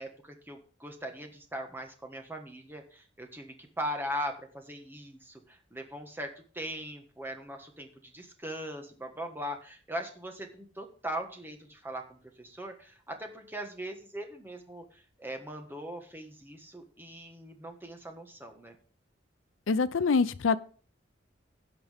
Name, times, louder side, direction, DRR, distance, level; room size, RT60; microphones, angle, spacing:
voice 1, 0.0-18.8, equal, 10° right, 1.5 m, -40 dB
voice 2, 19.7-20.6, left 4 dB, 85° left, 0.5 m, -25 dB
16.5 x 5.8 x 3.5 m
head